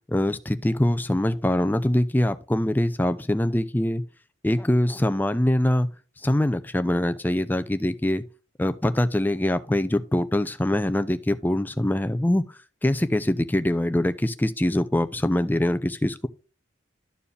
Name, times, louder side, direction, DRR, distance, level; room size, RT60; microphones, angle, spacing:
voice 1, 0.1-4.0 4.4-5.9 6.2-8.2 8.6-12.4 12.8-16.3, left 1 dB, 10° left, 0.5 m, -23 dB
12.5 x 4.7 x 3.3 m
head